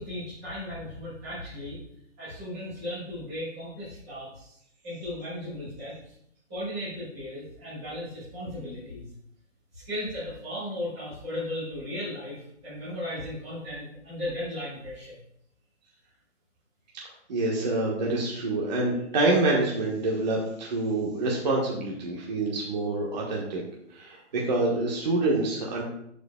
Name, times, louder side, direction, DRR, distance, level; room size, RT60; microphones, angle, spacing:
voice 1, 0.0-1.8 2.2-4.5 4.8-6.1 6.5-9.1 9.7-15.2, left 1 dB, 5° right, -16 dB, 0.6 m, -36 dB
voice 2, 16.9-23.6 23.9-25.8, right 2 dB, 35° right, -3 dB, 1.2 m, -27 dB
11.0 x 5.0 x 2.2 m, 0.73 s
hypercardioid pair, 160°, 37 cm